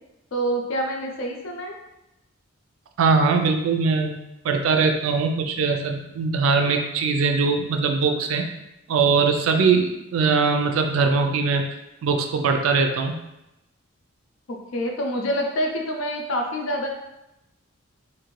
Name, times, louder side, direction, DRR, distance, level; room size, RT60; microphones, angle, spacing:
voice 1, 0.3-1.8 14.5-16.9, equal, 70° left, 1 dB, 0.5 m, -26 dB
voice 2, 3.0-4.2 4.4-8.5 8.9-11.6 12.0-13.2, right 4 dB, 70° right, 5 dB, 0.3 m, -21 dB
2.6 x 2.5 x 3.1 m, 0.91 s
head